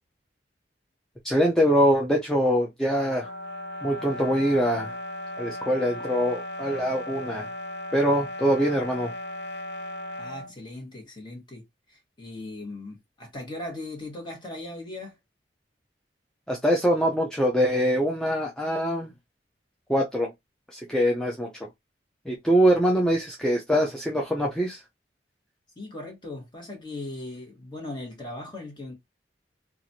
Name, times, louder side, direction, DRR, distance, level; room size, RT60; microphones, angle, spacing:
voice 1, 1.2-3.3 3.8-5.0 5.4-7.5 7.9-9.1 16.5-19.1 19.9-20.3 20.7-21.7 22.3-24.8, equal, 5° left, 0.4 m, -23 dB
sound 1, 3.0-10.5, left 1 dB, 65° left, 0.5 m, -36 dB
voice 2, 10.2-11.6 11.9-15.2 25.7-28.9, left 2 dB, 25° left, 1.3 m, -38 dB
3.0 x 2.4 x 2.7 m
head